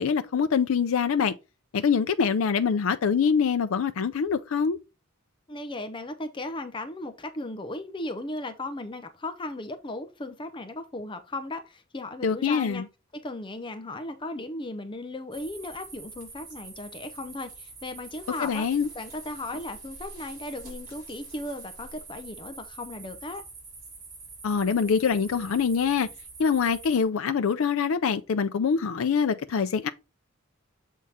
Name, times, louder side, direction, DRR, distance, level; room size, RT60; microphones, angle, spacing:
voice 1, 0.0-1.3 1.7-4.8 12.2-12.9 18.4-18.9 24.4-26.1 26.4-29.9, left 6 dB, 80° left, 0.4 m, -24 dB
voice 2, 5.5-12.9 13.1-18.7 18.9-23.4, left 2 dB, 25° left, 0.6 m, -36 dB
sound 1, 15.3-27.0, right 3 dB, 45° right, 3.4 m, -45 dB
7.4 x 3.6 x 4.2 m
head